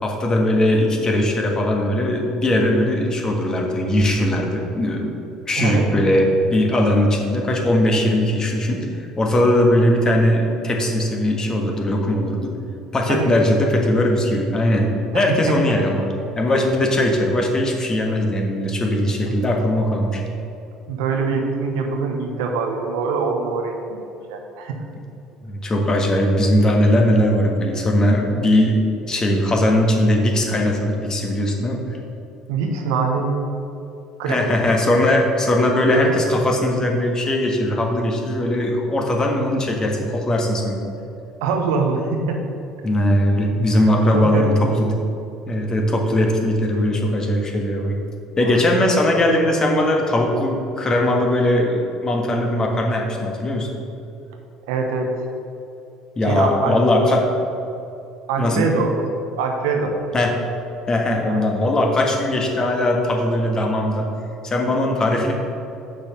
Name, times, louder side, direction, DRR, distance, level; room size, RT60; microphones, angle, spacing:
voice 1, 0.0-5.1 5.5-12.5 12.9-16.1 16.4-20.2 25.4-28.8 29.1-31.8 34.3-40.9 42.8-45.0 45.5-47.9 48.4-53.7 56.2-57.3 58.4-58.6 60.1-60.3 60.9-64.1 64.4-65.3, left 1 dB, 30° left, 1 dB, 1.5 m, -19 dB
voice 2, 5.6-5.9 13.1-13.4 15.1-15.6 19.3-19.4 20.9-24.9 32.5-33.4 34.2-34.4 35.9-36.2 41.4-42.4 43.8-44.7 48.4-48.6 54.7-55.3 56.3-56.8 58.3-58.9 59.4-59.9 61.3-61.5, right 4 dB, 80° right, 2 dB, 1.0 m, -24 dB
6.8 x 6.0 x 5.3 m, 2.8 s
hypercardioid pair, 70°, 2 cm